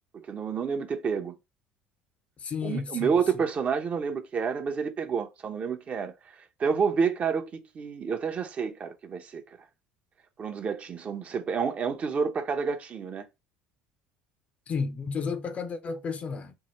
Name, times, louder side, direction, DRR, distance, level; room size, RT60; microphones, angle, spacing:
voice 1, 0.1-1.3 2.6-6.1 6.6-9.4 10.4-13.2, right 6 dB, 40° right, 0.7 m, -29 dB
voice 2, 2.4-3.1 14.7-16.5, left 5 dB, 35° left, 0.6 m, -32 dB
4.6 x 2.1 x 3.0 m
hypercardioid pair, 75°, 4 cm